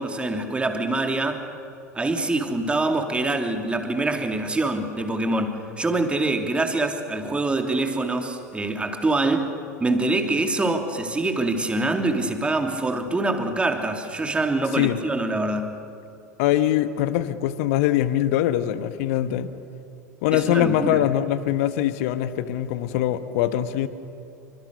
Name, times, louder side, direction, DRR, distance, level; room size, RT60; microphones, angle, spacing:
voice 1, 0.0-1.4 1.9-9.5 9.8-15.8 20.3-21.0, right 2 dB, 10° right, 5 dB, 3.0 m, -25 dB
voice 2, 16.4-19.5 20.2-23.9, left 12 dB, 55° left, 12 dB, 1.3 m, -23 dB
28.5 x 25.5 x 6.7 m, 2.5 s
figure-of-eight pair, 85°, 9 cm